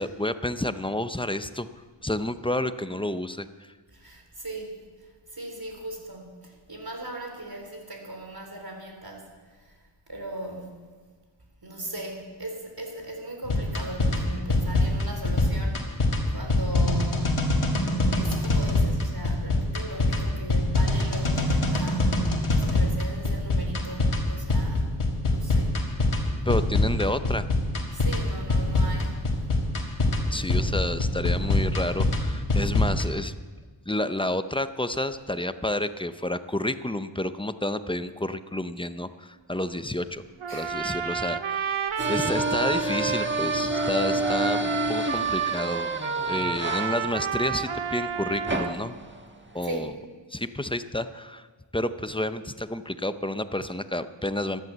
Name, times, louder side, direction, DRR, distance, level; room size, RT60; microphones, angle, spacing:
voice 1, 0.0-1.7 2.0-3.7 26.4-27.5 30.3-33.3 33.9-40.2 40.5-45.9 46.3-49.0 49.5-49.9 50.3-51.5 51.7-54.6, left 1 dB, 10° left, 11 dB, 0.6 m, -30 dB
voice 2, 3.9-4.8 5.3-9.3 9.6-9.7 10.1-10.9 11.6-15.9 16.3-17.6 18.1-24.9 25.3-25.8 27.9-29.2 40.5-40.7 42.0-42.4 49.6-49.9, right 1 dB, 50° right, 2 dB, 3.7 m, -38 dB
sound 1, 13.4-33.1, left 2 dB, 90° left, 2.0 m, -24 dB
Trumpet, 40.4-48.8, right 6 dB, 80° right, 0.8 m, -30 dB
sound 2, 42.0-49.7, right 1 dB, 25° right, 1.5 m, -31 dB
14.0 x 11.0 x 7.4 m, 1.5 s
wide cardioid pair, 50°, 48 cm